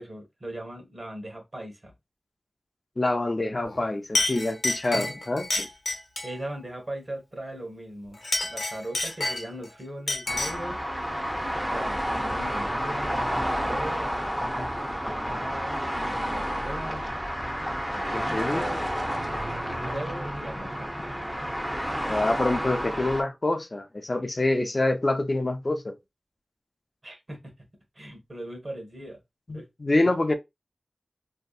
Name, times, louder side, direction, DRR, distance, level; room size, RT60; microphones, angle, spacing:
voice 1, 0.0-1.9 6.2-8.2 8.5-10.9 11.7-14.2 15.0-17.1 17.9-18.8 19.8-20.9 27.0-27.5 27.9-29.2 29.5-29.7, right 1 dB, 45° right, 1.0 m, -39 dB
voice 2, 3.0-5.7 18.1-18.6 22.1-25.9 29.5-30.3, left 2 dB, 40° left, 0.4 m, -26 dB
Chink clink, 3.6-3.8 4.1-6.4 8.1-9.7 10.1-10.7, left 2 dB, 75° left, 0.8 m, -29 dB
sound 1, 10.3-23.2, equal, 10° right, 0.6 m, -30 dB
2.7 x 2.2 x 2.3 m
wide cardioid pair, 65°, 0 cm